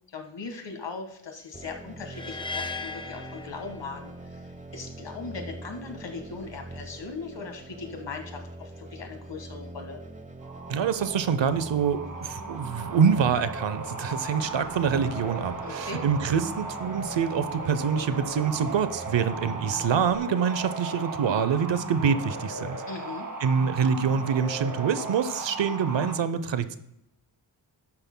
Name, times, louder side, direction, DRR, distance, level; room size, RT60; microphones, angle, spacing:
voice 1, 0.1-4.4 4.7-10.0 15.6-16.0 22.9-23.3, left 4 dB, 65° left, 4 dB, 1.7 m, -39 dB
sound 1, 1.5-20.2, right 1 dB, 15° right, 1.0 m, -44 dB
sound 2, 2.1-4.3, left 4 dB, 10° left, 0.5 m, -37 dB
sound 3, 10.4-26.2, right 3 dB, 45° right, 1.8 m, -37 dB
voice 2, 10.7-22.8 23.4-26.8, right 7 dB, 70° right, 13 dB, 0.8 m, -26 dB
12.5 x 9.7 x 2.2 m, 0.80 s
cardioid pair, 45°, 46 cm